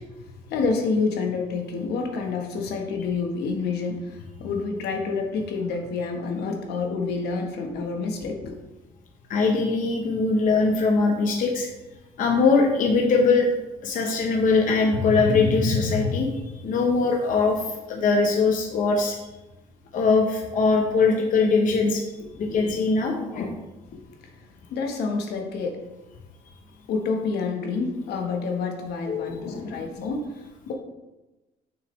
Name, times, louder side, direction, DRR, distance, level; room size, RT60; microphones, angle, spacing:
voice 1, 0.5-8.5 22.4-22.8 24.7-25.8 26.9-30.7, left 4 dB, 75° left, 3 dB, 1.2 m, -28 dB
voice 2, 9.3-11.7 12.2-13.5 13.8-19.2 19.9-22.0 22.3-23.5 29.1-30.1, left 4 dB, 50° left, 2 dB, 0.9 m, -22 dB
6.5 x 6.3 x 3.2 m, 1.1 s
cardioid pair, 110°, 17 cm